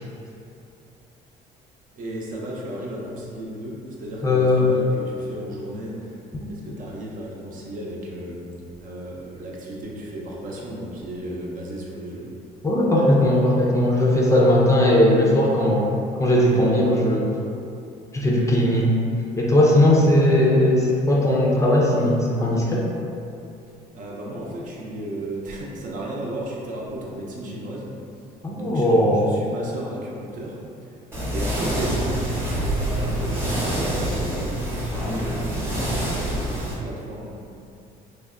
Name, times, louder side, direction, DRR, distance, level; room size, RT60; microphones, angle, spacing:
voice 1, 2.0-6.0 6.5-8.5 8.8-12.3 23.9-27.9 28.5-30.6 31.3-35.8 36.0-37.4, right 1 dB, 50° right, -4 dB, 0.7 m, -34 dB
voice 2, 4.2-4.7 6.3-6.5 12.6-15.9 16.2-17.3 18.1-18.9 19.4-22.8 28.4-29.4, left 1 dB, 20° left, -4 dB, 0.5 m, -18 dB
sound 1, 31.1-36.7, right 1 dB, 15° right, 0.9 m, -26 dB
3.3 x 2.2 x 3.6 m, 2.6 s
cardioid pair, 110°, 17 cm